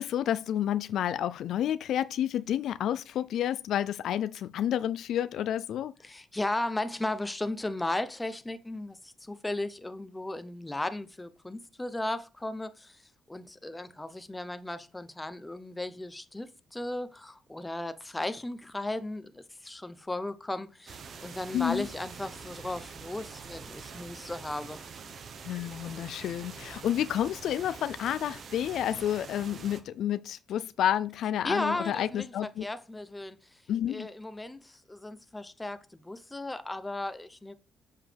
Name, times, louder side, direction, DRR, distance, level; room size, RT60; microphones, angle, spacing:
voice 1, 0.0-5.9 21.5-21.9 25.4-32.7 33.7-34.1, left 10 dB, 75° left, 0.4 m, -30 dB
voice 2, 6.0-13.0 13.3-24.8 31.4-33.6 33.9-37.5, left 2 dB, 15° left, 0.8 m, -36 dB
sound 1, 20.9-29.8, right 5 dB, 55° right, 1.0 m, -45 dB
7.3 x 5.5 x 3.4 m
cardioid pair, 90°, 0 cm